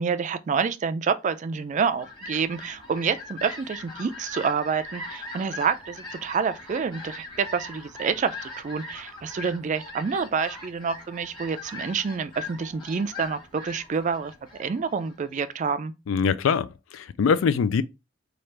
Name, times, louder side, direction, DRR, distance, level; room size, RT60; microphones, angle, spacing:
voice 1, 0.0-14.3 14.6-15.9, right 6 dB, 40° right, 0.3 m, -28 dB
Fowl, 1.6-15.5, left 2 dB, 25° left, 1.2 m, -41 dB
voice 2, 16.1-17.8, left 6 dB, 90° left, 0.4 m, -23 dB
3.2 x 2.4 x 4.3 m
head